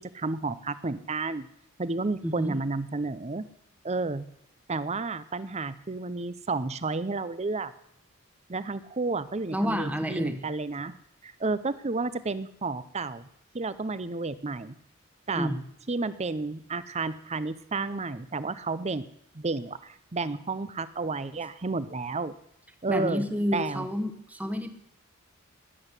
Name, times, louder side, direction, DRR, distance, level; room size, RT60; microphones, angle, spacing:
voice 1, 0.1-1.5 1.8-3.4 3.8-4.2 4.7-7.7 8.5-10.9 11.2-13.3 13.5-14.7 15.3-15.5 15.9-19.0 19.3-22.3 22.8-23.2 23.5-23.9, right 3 dB, 30° right, 15 dB, 0.7 m, -31 dB
voice 2, 2.2-2.6 9.5-10.4 15.3-15.6 22.9-24.7, equal, 5° right, 7 dB, 1.2 m, -29 dB
20.0 x 8.0 x 8.2 m, 0.74 s
head